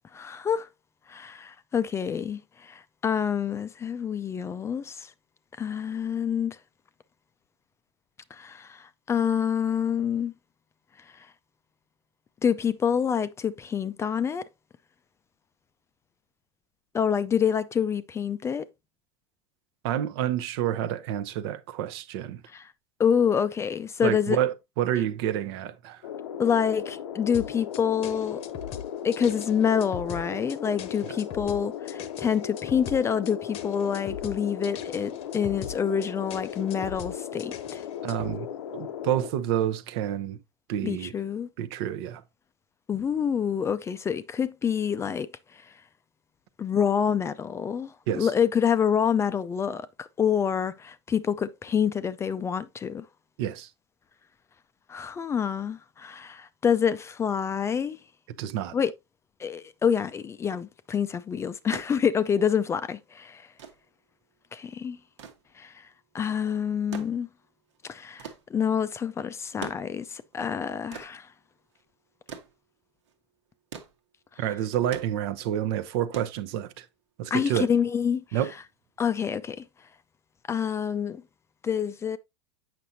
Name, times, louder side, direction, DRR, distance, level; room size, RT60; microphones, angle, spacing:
voice 1, 0.1-0.7 1.1-5.1 5.6-6.6 8.3-10.3 12.4-14.4 16.9-18.6 22.5-22.6 23.0-24.4 26.4-28.4 29.0-37.8 40.8-41.5 42.9-45.3 46.6-53.0 54.9-58.0 58.7-58.9 59.4-63.5 64.5-65.0 65.6-65.7 66.1-67.3 67.8-71.3 77.3-78.2 79.0-79.6 80.5-81.2 81.6-82.2, left 7 dB, 20° left, 0.4 m, -27 dB
voice 2, 19.8-22.4 24.0-26.0 31.0-31.1 38.0-38.5 38.7-40.4 40.7-41.1 41.6-42.2 48.1-48.3 53.4-53.7 58.4-58.7 74.4-76.8 77.2-77.7 78.3-78.5, right 11 dB, 65° right, 0.8 m, -28 dB
sound 1, 26.0-39.3, left 9 dB, 90° left, 0.8 m, -37 dB
sound 2, 27.3-38.4, left 9 dB, 45° left, 0.8 m, -41 dB
sound 3, 61.7-77.0 78.2-78.3, right 7 dB, 85° right, 1.4 m, -46 dB
7.6 x 5.9 x 2.7 m
supercardioid pair, 120°, 15 cm